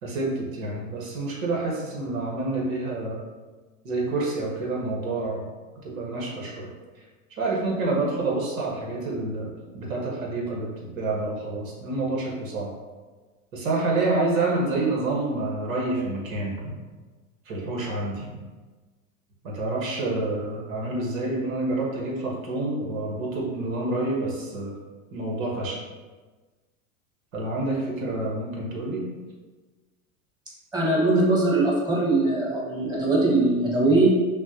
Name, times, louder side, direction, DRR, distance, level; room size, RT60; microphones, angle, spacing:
voice 1, 0.0-3.2 3.8-5.5 5.8-6.7 7.4-12.7 13.5-16.7 17.4-18.3 19.4-24.7 25.1-25.8 27.3-29.0, right 2 dB, 75° right, -2 dB, 1.4 m, -28 dB
voice 2, 30.7-34.1, right 2 dB, 10° right, -5 dB, 1.4 m, -21 dB
5.9 x 2.3 x 2.8 m, 1.3 s
hypercardioid pair, 90°, 40 cm